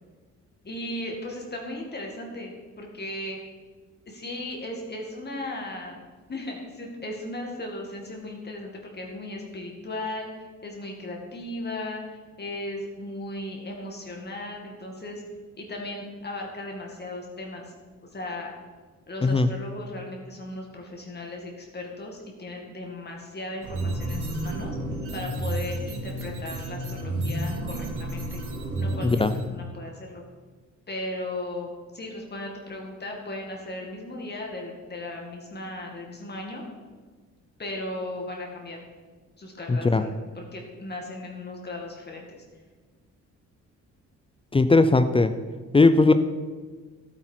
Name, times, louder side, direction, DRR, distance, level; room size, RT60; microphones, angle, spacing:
voice 1, 0.6-3.4 4.1-6.0 6.3-15.2 15.6-17.7 18.1-18.5 19.1-24.7 25.1-28.4 28.8-29.2 29.5-30.2 30.9-36.6 37.6-38.8 39.4-42.4, left 1 dB, 35° left, 0 dB, 2.2 m, -36 dB
sound 1, 23.6-29.4, right 1 dB, 80° right, 3.7 m, -31 dB
voice 2, 39.7-40.0 44.5-45.3 45.7-46.1, left 3 dB, 20° left, 10 dB, 0.5 m, -18 dB
12.0 x 8.8 x 4.5 m, 1.4 s
cardioid pair, 90°, 30 cm